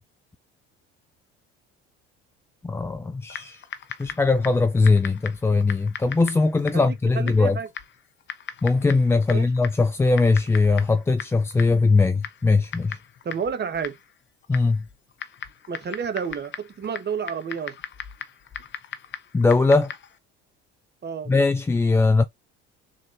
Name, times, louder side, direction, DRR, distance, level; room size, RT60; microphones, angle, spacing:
voice 1, 2.6-3.6 4.0-7.6 8.6-13.0 14.5-14.8 19.3-19.9 21.3-22.2, left 3 dB, 10° left, 0.3 m, -20 dB
Typing, 3.3-20.2, left 8 dB, 40° left, 0.7 m, -39 dB
voice 2, 6.7-7.7 9.3-9.5 13.2-13.9 15.7-17.7 21.0-21.3, right 6 dB, 35° right, 1.1 m, -30 dB
3.7 x 3.4 x 2.5 m
hypercardioid pair, 75°, 30 cm